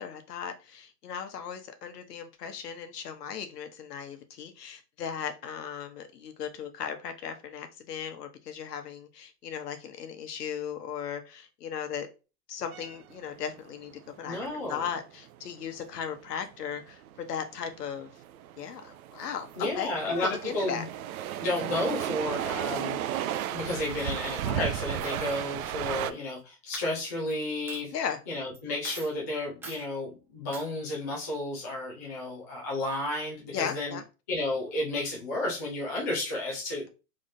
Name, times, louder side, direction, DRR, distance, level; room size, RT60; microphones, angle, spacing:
voice 1, 0.0-12.1 12.5-13.9 14.2-18.1 18.6-20.8 27.9-28.2 33.5-34.0, left 7 dB, 70° left, 1.0 m, -37 dB
sound 1, 12.7-26.1, right 11 dB, 65° right, 0.5 m, -35 dB
voice 2, 14.2-14.8 19.6-20.3 20.5-20.9 21.4-27.9 28.3-34.0 34.3-36.9, left 1 dB, 15° left, 0.3 m, -32 dB
Coin (dropping), 26.1-26.4 26.7-27.3 27.7-27.8 28.5-28.6 28.8-29.1 29.6-29.8 30.5-30.7, right 2 dB, 5° right, 0.7 m, -42 dB
3.6 x 3.2 x 2.6 m
hypercardioid pair, 135°, 49 cm